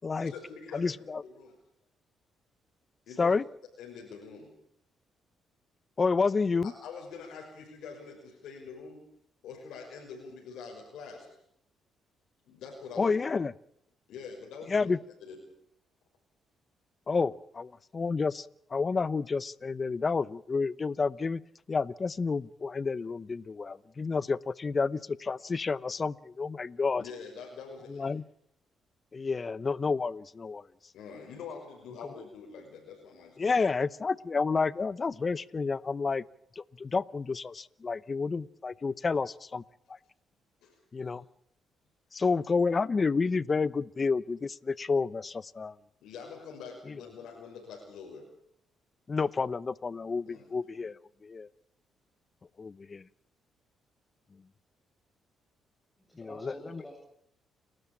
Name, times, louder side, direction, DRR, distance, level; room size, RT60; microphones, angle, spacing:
voice 1, 0.2-1.6 3.1-3.3 3.8-4.5 6.6-9.0 9.4-11.3 12.4-13.2 14.1-14.9 15.2-15.4 27.0-28.1 30.9-33.6 40.6-41.2 46.0-48.3 50.3-50.4, left 5 dB, 80° left, 1 dB, 5.9 m, -45 dB
voice 2, 0.7-1.2 3.2-3.4 6.0-6.7 13.0-13.5 14.7-15.0 17.1-21.4 21.7-27.0 27.9-28.2 29.1-30.7 32.2-32.3 33.4-36.2 36.6-39.6 40.9-41.2 42.1-45.7 46.9-47.0 49.1-51.5 52.6-53.0 56.2-56.8, left 4 dB, 35° left, 19 dB, 0.8 m, -30 dB
voice 3, 56.0-57.0, equal, 10° left, 0 dB, 7.2 m, -47 dB
30.0 x 13.0 x 8.8 m, 0.70 s
cardioid pair, 90°, 0 cm